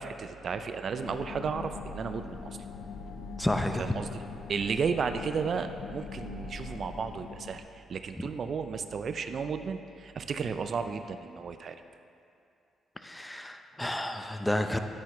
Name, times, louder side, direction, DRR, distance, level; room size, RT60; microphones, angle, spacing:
voice 1, 0.0-2.6 3.8-4.2 4.5-11.8, right 5 dB, 55° right, 9 dB, 0.4 m, -33 dB
sound 1, 1.0-7.6, left 4 dB, 75° left, 0.7 m, -42 dB
voice 2, 3.4-3.8 8.2-8.3 13.0-14.8, left 1 dB, 10° left, 6 dB, 0.6 m, -31 dB
9.2 x 9.1 x 3.1 m, 2.5 s
supercardioid pair, 60°, 0 cm